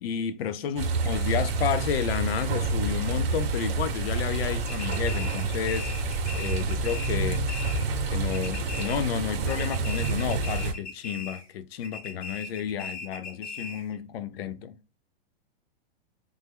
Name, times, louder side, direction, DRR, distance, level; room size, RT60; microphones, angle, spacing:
voice 1, 0.0-5.9 6.3-7.5 8.1-14.8, left 8 dB, 75° left, 0.6 m, -31 dB
sound 1, 0.8-10.7, right 3 dB, 75° right, 0.8 m, -28 dB
sound 2, 4.7-8.0 8.3-9.2 9.5-11.5 11.8-13.9, left 3 dB, 20° left, 0.6 m, -39 dB
3.3 x 2.0 x 3.4 m
hypercardioid pair, 155°, 30 cm